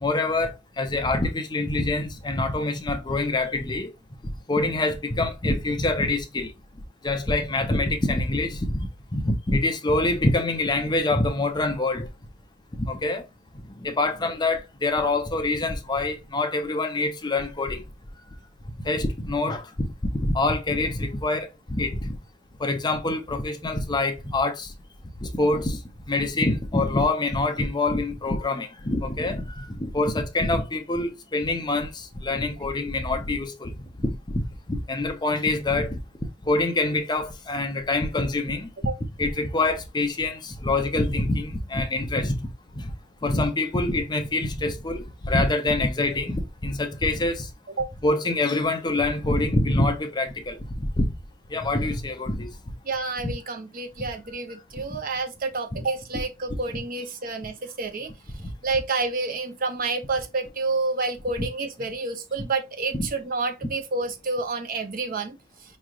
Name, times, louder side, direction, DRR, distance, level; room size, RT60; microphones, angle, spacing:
voice 1, 0.0-3.9 4.5-6.5 7.0-8.7 9.1-12.1 12.7-13.2 13.5-17.8 18.8-19.9 20.2-22.2 22.6-24.7 25.2-25.8 26.1-36.0 36.5-38.7 39.2-42.3 42.7-42.9 43.2-47.5 48.0-51.1 51.5-52.5 53.2-53.3 54.5-54.6 55.7-55.8 58.4-58.5 62.9-63.1, left 2 dB, 20° left, 0.5 m, -25 dB
voice 2, 52.8-58.1 58.6-65.8, right 3 dB, 40° right, 0.6 m, -29 dB
4.7 x 3.1 x 2.4 m
head